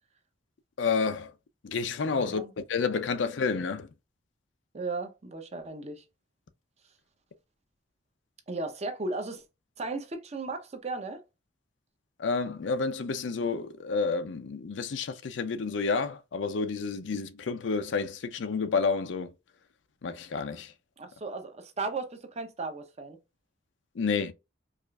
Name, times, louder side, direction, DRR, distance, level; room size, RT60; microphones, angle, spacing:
voice 1, 0.8-1.3 1.6-3.9 12.2-19.3 20.0-20.7 24.0-24.3, left 5 dB, 80° left, 0.5 m, -30 dB
voice 2, 2.2-2.5 4.7-6.0 8.5-9.4 9.8-11.2 21.0-23.2, right 3 dB, 35° right, 0.7 m, -36 dB
4.7 x 2.4 x 2.3 m
head